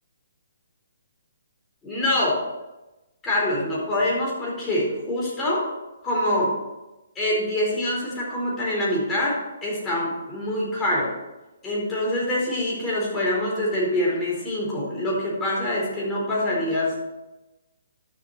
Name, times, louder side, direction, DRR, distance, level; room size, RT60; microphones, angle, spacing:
voice 1, 1.8-2.4 3.2-5.6 6.0-6.5 7.1-11.1 11.6-17.0, left 1 dB, 15° left, -5 dB, 4.3 m, -25 dB
11.5 x 7.0 x 4.8 m, 1.0 s
hypercardioid pair, 145°, 0 cm